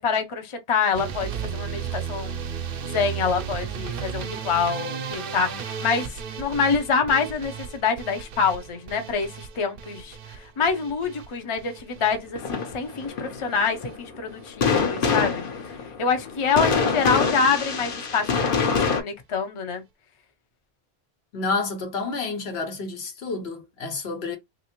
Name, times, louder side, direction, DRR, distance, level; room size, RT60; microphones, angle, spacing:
voice 1, 0.0-2.4 2.8-18.6 18.9-19.8, left 5 dB, 35° left, 0.6 m, -26 dB
sound 1, 0.9-13.1 13.4-14.0 14.3-14.9 15.2-15.4 15.7-15.8 16.1-16.2, right 7 dB, 65° right, 0.7 m, -35 dB
sound 2, 12.3-19.0, left 5 dB, 60° left, 0.9 m, -25 dB
voice 2, 21.3-24.4, left 3 dB, 80° left, 1.1 m, -29 dB
3.2 x 2.6 x 2.9 m
omnidirectional pair, 1.1 m